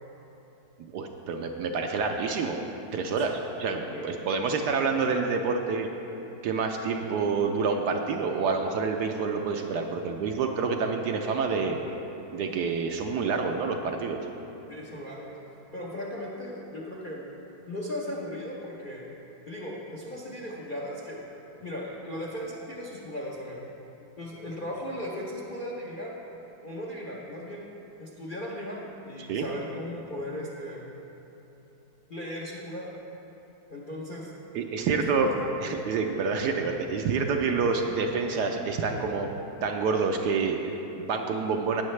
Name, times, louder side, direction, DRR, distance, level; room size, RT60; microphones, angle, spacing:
voice 1, 0.9-2.6 2.9-5.9 6.4-11.8 12.3-14.2 29.2-29.5 34.5-35.3 35.6-39.3 39.6-41.8, right 4 dB, 70° right, 3 dB, 1.1 m, -28 dB
voice 2, 14.7-15.4 15.7-17.2 17.7-19.0 19.5-21.2 21.6-23.7 24.2-26.2 26.6-27.7 28.0-30.9 32.1-32.9 33.7-34.3 34.9-35.3, left 1 dB, 45° left, -4 dB, 0.6 m, -37 dB
17.5 x 6.5 x 3.2 m, 3.0 s
omnidirectional pair, 2.0 m